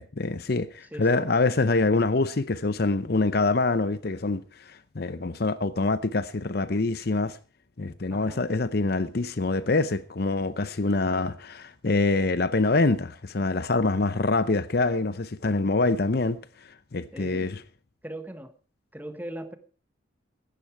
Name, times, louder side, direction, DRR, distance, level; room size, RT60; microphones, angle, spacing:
voice 1, 0.0-7.4 7.8-16.4 16.9-17.6, left 3 dB, 55° left, 0.7 m, -25 dB
voice 2, 0.9-1.2 8.1-8.4 17.1-17.5 18.0-18.5 18.9-19.6, right 1 dB, 10° right, 1.3 m, -39 dB
16.0 x 12.0 x 4.6 m
head